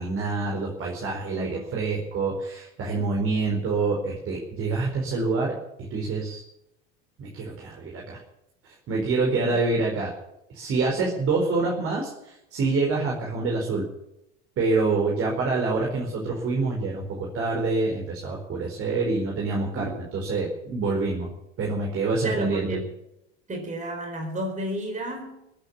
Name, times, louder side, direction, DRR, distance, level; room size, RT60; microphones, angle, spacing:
voice 1, 0.0-5.5 5.9-6.4 7.2-8.2 8.9-10.1 10.5-13.9 14.6-21.3 21.6-22.7, right 3 dB, 40° right, -1 dB, 4.6 m, -26 dB
voice 2, 1.3-1.7 9.3-9.6 19.7-20.0 22.2-22.8 23.5-25.3, right 1 dB, 20° right, 2 dB, 4.6 m, -32 dB
21.5 x 9.0 x 7.3 m, 0.85 s
supercardioid pair, 115°, 33 cm